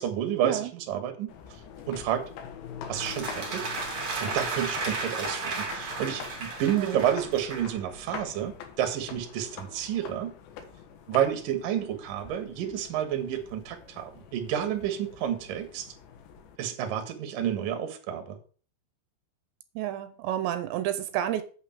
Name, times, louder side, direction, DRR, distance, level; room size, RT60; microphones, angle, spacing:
voice 1, 0.0-1.3 1.9-2.3 2.9-3.7 4.2-10.3 11.1-15.9 16.6-18.4, right 10 dB, 60° right, 7 dB, 2.6 m, -30 dB
sound 1, 1.3-16.6, left 7 dB, 80° left, 3.4 m, -45 dB
sound 2, 2.9-7.8, right 3 dB, 35° right, 3.1 m, -34 dB
voice 2, 19.8-21.4, right 12 dB, 85° right, 10 dB, 2.9 m, -30 dB
8.5 x 5.0 x 7.2 m, 0.40 s
omnidirectional pair, 5.2 m